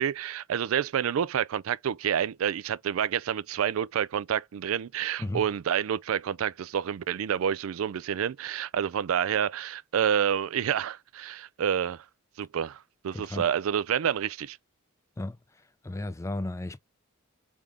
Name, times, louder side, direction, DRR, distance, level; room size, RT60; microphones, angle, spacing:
voice 1, 0.0-12.0 12.4-14.6, right 8 dB, 85° right, 0.4 m, -28 dB
voice 2, 13.1-13.5 15.2-15.4 15.8-16.8, left 1 dB, 15° left, 0.3 m, -34 dB
3.6 x 3.6 x 3.2 m
head